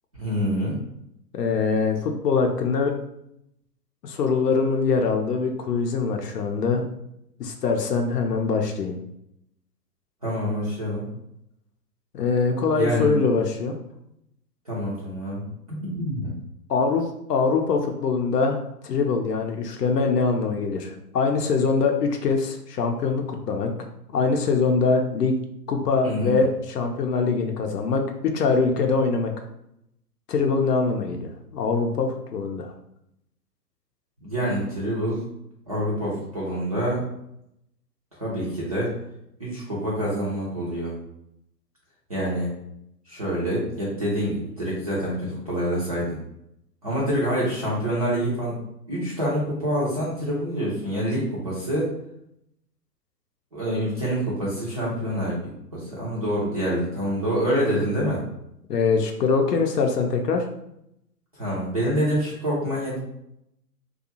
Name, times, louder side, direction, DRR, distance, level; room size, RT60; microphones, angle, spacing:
voice 1, 0.2-0.7 10.2-11.1 12.8-13.1 14.7-15.4 15.9-16.3 26.0-26.3 31.1-31.2 34.2-35.2 35.7-37.0 38.2-38.9 39.4-41.0 42.1-42.5 43.1-46.2 46.8-48.6 48.9-51.9 53.5-55.4 55.7-58.2 61.4-63.0, equal, 25° right, -7 dB, 0.4 m, -26 dB
voice 2, 1.3-2.9 4.0-6.9 7.4-9.0 12.1-13.8 16.7-23.7 24.1-25.4 25.7-29.4 30.3-32.7 58.7-60.5, left 4 dB, 75° left, 3 dB, 0.6 m, -23 dB
2.5 x 2.2 x 2.8 m, 0.79 s
figure-of-eight pair, 120°, 48 cm